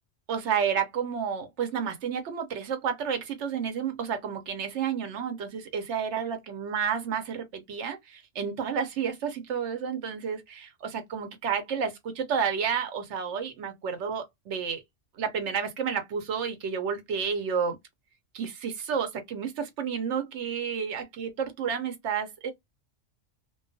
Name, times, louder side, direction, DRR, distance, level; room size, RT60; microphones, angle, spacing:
voice 1, 0.3-14.8 15.2-17.8 18.3-22.5, right 7 dB, 70° right, 1.0 m, -31 dB
2.3 x 2.2 x 2.5 m
omnidirectional pair, 1.3 m